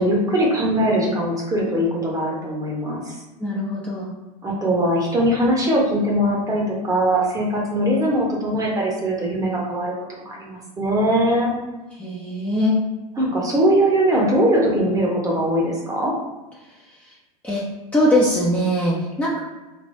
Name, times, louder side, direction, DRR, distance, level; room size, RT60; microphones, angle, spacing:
voice 1, 0.0-3.1 4.4-11.5 13.2-16.1, right 1 dB, 15° right, -2 dB, 1.0 m, -21 dB
voice 2, 3.4-4.1 12.0-12.8 17.4-17.6 17.9-19.4, left 1 dB, 5° left, -6 dB, 0.7 m, -21 dB
3.5 x 2.8 x 2.6 m, 1.1 s
hypercardioid pair, 100°, 20 cm